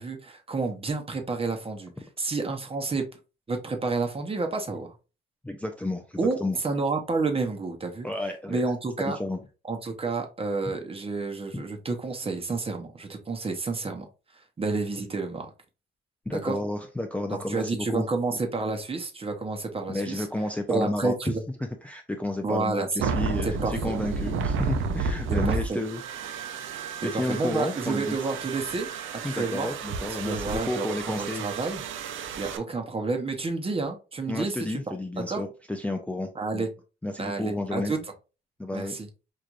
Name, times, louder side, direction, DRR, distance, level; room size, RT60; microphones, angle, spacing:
voice 1, 0.0-1.9 2.2-3.1 3.5-4.9 6.2-8.1 8.5-9.2 9.7-14.1 14.6-15.5 16.4-16.6 17.5-20.2 20.7-21.4 22.4-23.0 23.4-23.7 25.3-25.8 27.1-28.9 29.2-29.7 30.2-31.8 32.4-34.8 35.3-35.4 36.4-36.7 37.2-38.0 38.7-39.1, right 3 dB, 30° right, 4 dB, 0.9 m, -30 dB
voice 2, 5.4-6.6 8.0-8.6 9.0-9.4 11.5-11.6 16.3-18.4 19.9-21.4 21.8-26.0 26.4-26.5 27.0-28.2 29.2-31.5 34.3-36.7 37.0-37.9 38.6-38.9, left 1 dB, 5° left, 3 dB, 0.5 m, -31 dB
sound 1, 23.0-32.6, right 5 dB, 80° right, 0.5 m, -32 dB
4.6 x 2.5 x 2.5 m, 0.31 s
cardioid pair, 90°, 20 cm